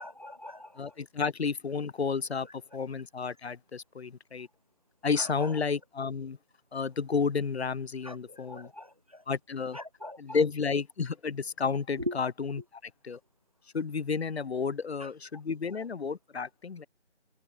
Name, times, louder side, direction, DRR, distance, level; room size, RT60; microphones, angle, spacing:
voice 1, 0.0-0.9 5.2-5.5 8.0-9.2 9.7-10.2 12.0-12.2 15.0-15.1, left 1 dB, 30° right, 0.5 m, -40 dB
voice 2, 0.8-4.5 5.0-6.4 6.7-8.7 9.3-9.8 10.2-13.2 13.7-16.9, left 5 dB, 65° left, 0.7 m, -31 dB
figure-of-eight pair, 170°, 35 cm